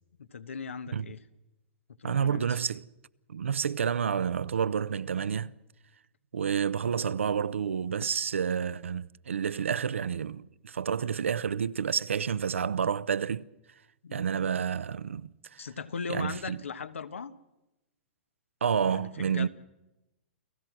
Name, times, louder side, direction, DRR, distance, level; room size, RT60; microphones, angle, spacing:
voice 1, 0.2-1.2 2.0-2.6 14.0-14.2 15.6-17.3 18.9-19.5, left 5 dB, 85° left, 1.3 m, -38 dB
voice 2, 2.0-2.8 3.3-5.5 6.3-13.5 14.1-15.6 16.1-16.6 18.6-19.5, right 7 dB, 85° right, 0.7 m, -29 dB
29.0 x 16.0 x 6.1 m
hypercardioid pair, 120°, 7 cm